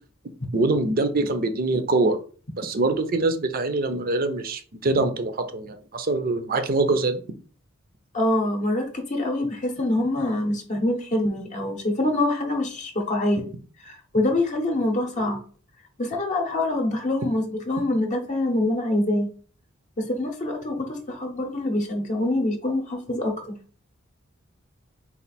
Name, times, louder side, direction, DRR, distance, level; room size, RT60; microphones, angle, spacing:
voice 1, 0.5-2.2 2.6-7.2, right 2 dB, 45° right, 8 dB, 0.6 m, -24 dB
voice 2, 8.1-13.4 13.9-15.4 16.0-19.3 20.0-23.4, left 1 dB, 35° left, 3 dB, 0.7 m, -25 dB
4.2 x 2.5 x 4.1 m, 0.40 s
head